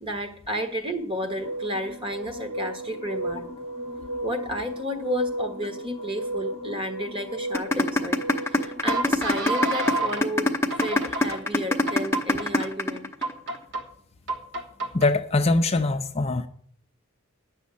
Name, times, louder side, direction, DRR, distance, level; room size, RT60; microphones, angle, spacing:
voice 1, 0.0-3.5 4.2-8.2 8.5-10.5 10.8-13.1, equal, 25° right, 6 dB, 1.4 m, -32 dB
sound 1, 1.2-10.2 10.7-11.4 11.9-12.7 13.2-13.8 14.3-15.1, right 2 dB, 65° right, 1.5 m, -32 dB
sound 2, 7.5-13.6, left 2 dB, 10° left, 0.8 m, -22 dB
voice 2, 14.9-16.5, left 2 dB, 30° left, 6 dB, 0.5 m, -22 dB
9.9 x 6.3 x 8.3 m, 0.64 s
head